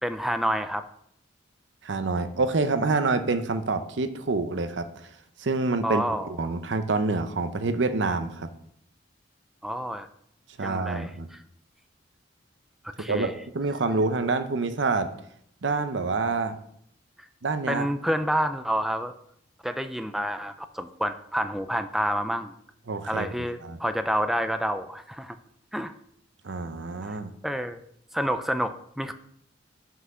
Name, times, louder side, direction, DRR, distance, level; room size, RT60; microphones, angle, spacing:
voice 1, 0.0-0.9 5.8-6.4 9.6-10.1 10.6-11.4 13.0-13.4 17.7-19.1 19.6-22.5 23.0-25.4 25.7-25.9 27.0-27.2 27.4-27.8 28.1-29.1, equal, ahead, 9 dB, 0.3 m, -28 dB
voice 2, 1.8-4.9 5.4-6.0 6.3-8.5 10.6-11.3 13.1-15.1 15.6-16.6 17.4-17.9 22.9-23.3 23.6-23.8 26.4-27.3, right 3 dB, 75° right, 10 dB, 0.7 m, -27 dB
6.0 x 5.6 x 5.5 m, 0.70 s
head